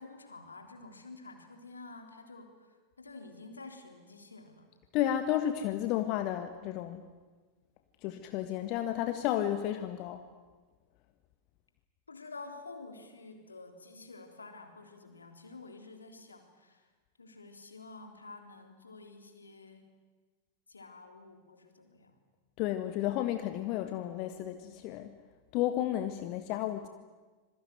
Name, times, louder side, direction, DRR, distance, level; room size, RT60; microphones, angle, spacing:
voice 1, 0.0-2.5 3.0-4.7 12.1-16.8 17.2-19.8 20.7-22.1, left 3 dB, 75° left, 5 dB, 3.5 m, -49 dB
voice 2, 4.9-7.0 8.0-10.2 22.6-25.1 25.5-26.9, left 12 dB, 40° left, 8 dB, 1.5 m, -32 dB
26.5 x 21.5 x 9.5 m, 1.3 s
figure-of-eight pair, 90°, 0 cm